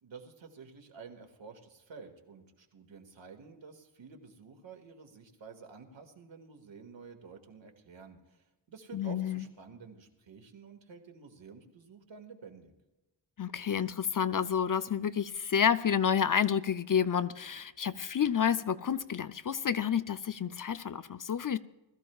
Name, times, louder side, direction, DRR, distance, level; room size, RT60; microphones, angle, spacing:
voice 1, 0.0-12.7, right 5 dB, 70° right, 4 dB, 2.0 m, -51 dB
voice 2, 8.9-9.5 13.4-21.6, left 8 dB, 45° left, 13 dB, 0.6 m, -29 dB
20.5 x 14.0 x 2.4 m, 1.0 s
wide cardioid pair, 80°, 46 cm